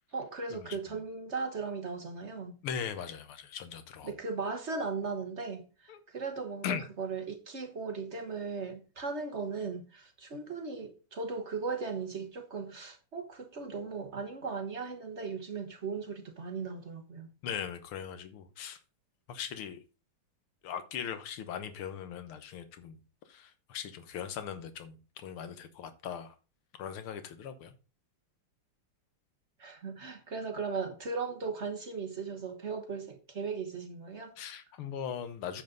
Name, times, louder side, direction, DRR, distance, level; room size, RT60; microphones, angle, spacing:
voice 1, 0.1-2.5 4.0-17.3 29.6-34.3, right 4 dB, 40° right, 1.1 m, -37 dB
voice 2, 2.6-4.1 5.9-6.0 6.6-6.9 17.4-18.8 19.3-19.8 20.6-23.0 23.3-26.3 26.8-27.7 34.4-35.6, left 8 dB, 80° left, 1.9 m, -39 dB
9.2 x 7.5 x 3.9 m
omnidirectional pair, 2.4 m